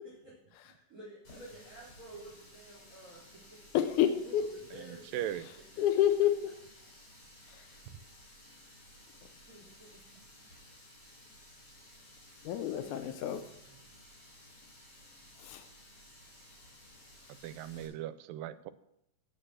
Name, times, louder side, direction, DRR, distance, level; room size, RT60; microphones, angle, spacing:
voice 1, 0.6-3.6 4.3-4.4 4.7-5.2 5.6-5.8 9.5-10.0 12.8-12.9, right 1 dB, 25° right, -7 dB, 4.5 m, -51 dB
Water tap faucet, 1.2-17.9, left 1 dB, 40° left, 4.9 m, -56 dB
voice 2, 3.7-4.4 5.8-6.3 7.5-7.6 12.4-13.4 15.4-15.6, left 11 dB, 75° left, 9 dB, 2.0 m, -28 dB
voice 3, 5.1-5.5 17.4-18.7, right 12 dB, 85° right, 13 dB, 2.4 m, -38 dB
9.4 x 8.9 x 6.2 m, 0.76 s
omnidirectional pair, 3.9 m